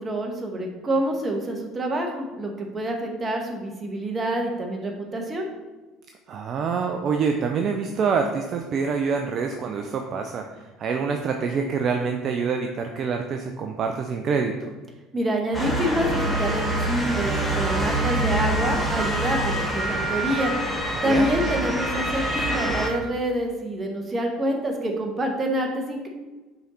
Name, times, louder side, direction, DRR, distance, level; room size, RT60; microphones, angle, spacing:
voice 1, 0.0-5.5 15.1-20.5 21.0-26.1, right 1 dB, 25° right, 2 dB, 1.4 m, -27 dB
voice 2, 6.3-14.7 21.0-21.3, right 5 dB, 50° right, 4 dB, 0.5 m, -26 dB
Motor vehicle (road) / Siren, 15.5-22.9, right 1 dB, 5° left, 1.9 m, -25 dB
5.6 x 3.9 x 4.3 m, 1.2 s
hypercardioid pair, 75°, 0 cm